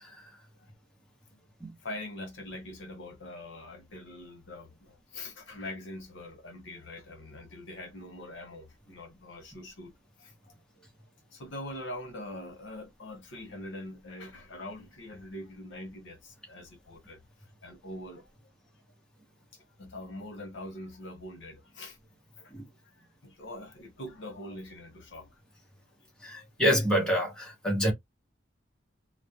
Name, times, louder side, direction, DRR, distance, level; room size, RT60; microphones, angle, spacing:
voice 1, 1.8-9.9 10.2-10.3 10.8-10.9 11.3-17.2 17.6-18.3 19.5-22.0 22.4-22.6 22.9-25.3 26.3-26.5, left 1 dB, 70° left, 0.9 m, -43 dB
voice 2, 26.2-27.9, equal, 5° left, 0.8 m, -27 dB
2.2 x 2.1 x 2.7 m
head